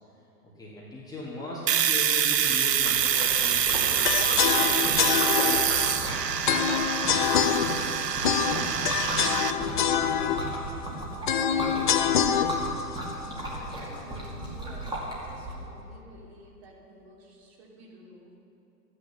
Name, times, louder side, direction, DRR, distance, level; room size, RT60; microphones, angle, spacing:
voice 1, 0.6-5.5, left 1 dB, 10° left, -6 dB, 1.5 m, -39 dB
Domestic sounds home sounds, 1.7-9.5, right 8 dB, 85° right, 0.7 m, -25 dB
Liquid, 2.3-15.5, right 1 dB, 10° right, 2.1 m, -36 dB
sound 1, 4.0-14.1, left 8 dB, 35° left, 0.4 m, -26 dB
voice 2, 13.5-18.3, right 2 dB, 40° right, -3 dB, 3.2 m, -50 dB
13.0 x 9.6 x 6.8 m, 2.7 s
figure-of-eight pair, 120°, 48 cm